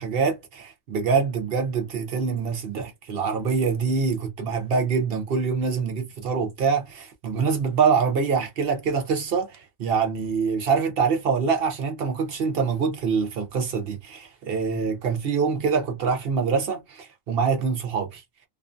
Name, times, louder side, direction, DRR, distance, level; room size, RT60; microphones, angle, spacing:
voice 1, 0.0-18.2, right 5 dB, 55° right, 0.7 m, -25 dB
2.4 x 2.3 x 2.4 m
omnidirectional pair, 1.4 m